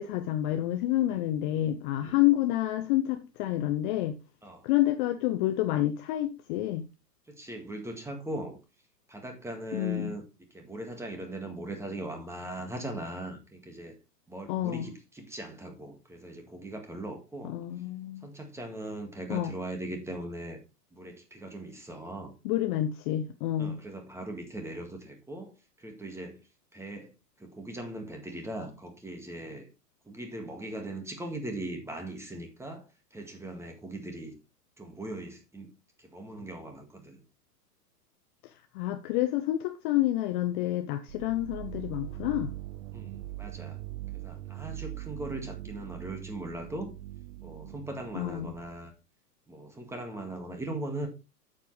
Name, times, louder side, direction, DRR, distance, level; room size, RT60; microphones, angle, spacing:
voice 1, 0.0-4.1 4.6-6.8 9.7-10.2 14.5-14.9 17.4-18.3 19.3-19.5 22.4-23.8 38.4-42.5 48.1-48.5, left 14 dB, 30° left, 0.7 m, -28 dB
voice 2, 7.3-8.6 9.1-10.2 10.5-14.0 14.3-17.6 18.2-20.6 20.9-22.3 23.6-25.5 25.8-26.4 26.7-27.1 27.4-29.7 30.1-34.3 34.8-35.7 36.0-37.2 42.9-43.8 44.1-46.9 47.4-48.9 49.5-51.1, right 1 dB, 5° right, 1.9 m, -39 dB
sound 1, 41.1-48.8, right 15 dB, 50° right, 0.9 m, -41 dB
8.9 x 7.6 x 3.3 m
hypercardioid pair, 115°, 49 cm